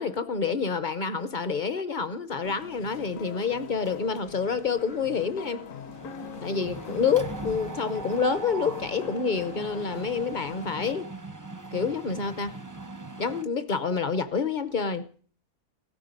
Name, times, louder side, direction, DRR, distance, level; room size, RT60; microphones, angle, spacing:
voice 1, 0.0-5.6 6.4-11.1 11.7-12.6 13.2-15.1, left 5 dB, 45° left, 0.6 m, -28 dB
sound 1, 2.4-10.9, left 6 dB, 60° left, 1.2 m, -43 dB
Mechanisms, 3.9-4.5 4.8-5.0 5.3-13.4, right 3 dB, 25° right, 0.4 m, -40 dB
16.5 x 13.0 x 5.4 m
omnidirectional pair, 1.7 m